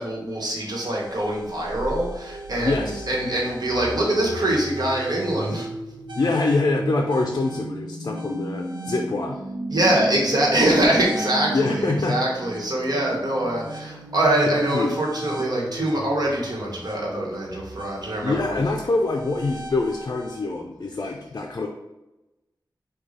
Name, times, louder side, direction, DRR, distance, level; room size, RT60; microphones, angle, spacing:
voice 1, 0.0-5.7 9.7-18.6, right 1 dB, 55° right, -3 dB, 1.3 m, -24 dB
sound 1, 0.7-20.4, right 1 dB, 75° right, 0.7 m, -35 dB
voice 2, 2.6-3.1 6.1-9.4 11.5-12.2 14.7-15.0 18.2-21.7, left 3 dB, 50° left, 2 dB, 0.4 m, -25 dB
4.7 x 2.3 x 3.9 m, 0.99 s
wide cardioid pair, 70°, 8 cm